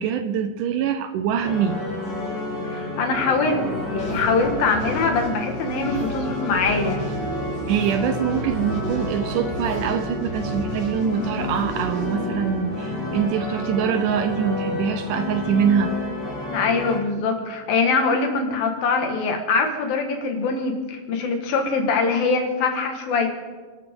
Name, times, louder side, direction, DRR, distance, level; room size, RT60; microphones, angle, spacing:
voice 1, 0.0-1.8 7.7-16.0, right 8 dB, 75° right, 8 dB, 2.1 m, -24 dB
sound 1, 1.4-17.0, left 2 dB, 25° left, 7.1 m, -30 dB
voice 2, 2.7-7.0 16.5-23.3, left 4 dB, 80° left, 3 dB, 3.6 m, -23 dB
sound 2, 4.0-12.8, left 1 dB, 55° left, 5.8 m, -35 dB
sound 3, 6.8-12.8, right 3 dB, 40° right, 7.1 m, -35 dB
29.0 x 13.0 x 3.8 m, 1.4 s
omnidirectional pair, 4.1 m